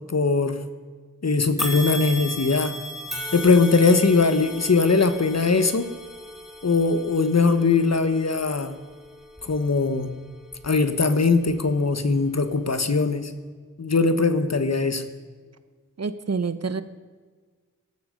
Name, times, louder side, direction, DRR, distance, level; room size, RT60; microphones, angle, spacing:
voice 1, 0.1-0.6 1.2-2.8 3.3-5.9 6.6-8.7 9.4-10.1 10.6-13.3 13.8-15.0, left 4 dB, 60° left, 10 dB, 1.6 m, -20 dB
sound 1, 1.6-10.9 11.4-11.6 12.5-12.6, equal, ahead, 3.8 m, -37 dB
voice 2, 16.0-16.8, right 4 dB, 55° right, 13 dB, 1.1 m, -27 dB
19.0 x 13.5 x 5.4 m, 1.5 s
wide cardioid pair, 65°, 30 cm